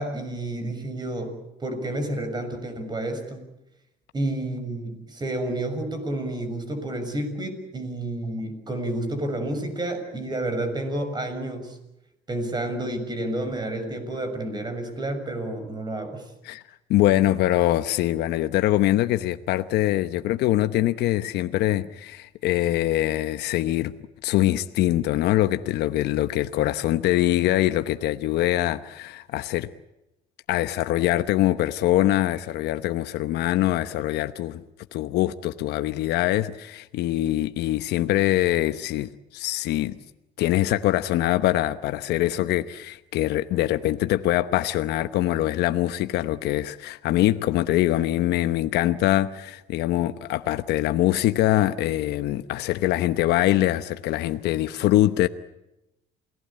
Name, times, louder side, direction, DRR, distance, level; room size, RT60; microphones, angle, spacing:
voice 1, 0.0-3.4 4.1-11.8 12.3-16.2, right 1 dB, 25° right, 6.6 m, -30 dB
voice 2, 16.9-23.9 24.2-29.7 30.5-34.6 34.9-39.9 40.4-55.3, left 14 dB, 80° left, 1.0 m, -23 dB
28.5 x 19.0 x 8.7 m
cardioid pair, 110°, 17 cm